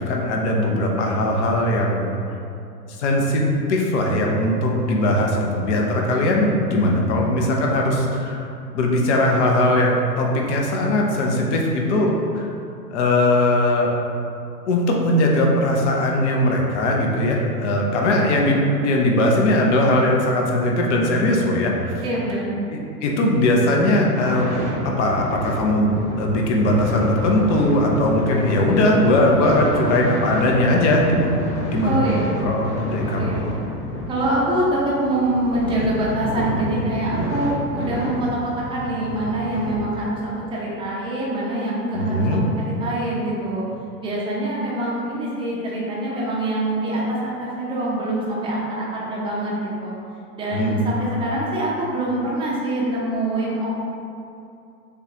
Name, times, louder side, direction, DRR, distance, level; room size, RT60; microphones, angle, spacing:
voice 1, 0.0-2.0 3.0-3.4 3.7-8.4 8.7-12.5 12.9-13.9 14.6-21.9 23.0-24.5 24.8-31.4 31.7-32.1 32.4-33.3 41.9-42.4 50.5-50.8, left 1 dB, 45° left, 0 dB, 0.8 m, -19 dB
voice 2, 22.0-22.5 31.8-32.3 33.2-33.4 34.1-38.3 38.6-42.4 42.6-43.6 44.0-49.9 50.3-53.7, right 1 dB, 10° right, -6 dB, 0.7 m, -25 dB
sound 1, 24.1-39.7, left 1 dB, 10° left, 0.3 m, -29 dB
6.8 x 2.4 x 2.9 m, 2.6 s
hypercardioid pair, 110°, 48 cm